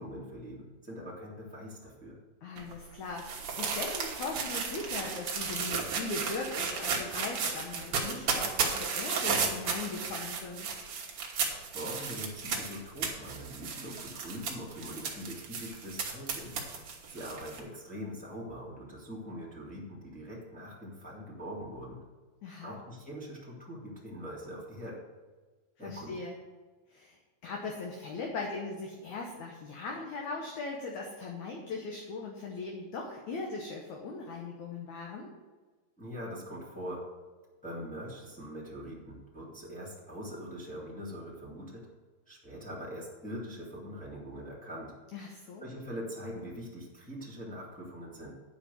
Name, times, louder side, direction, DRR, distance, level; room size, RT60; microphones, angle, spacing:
voice 1, 0.0-2.2 11.7-16.6 17.1-22.0 22.6-25.0 25.8-26.2 36.0-37.0 37.6-41.8 42.3-44.9 45.6-48.3, equal, 5° left, -5 dB, 0.6 m, -42 dB
voice 2, 2.4-10.7 22.4-22.8 25.8-26.4 26.9-35.3 45.1-45.6, left 3 dB, 65° left, 0 dB, 2.0 m, -39 dB
sound 1, 2.6-17.6, right 5 dB, 60° right, 1.6 m, -34 dB
10.0 x 5.1 x 6.8 m, 1.3 s
omnidirectional pair, 4.2 m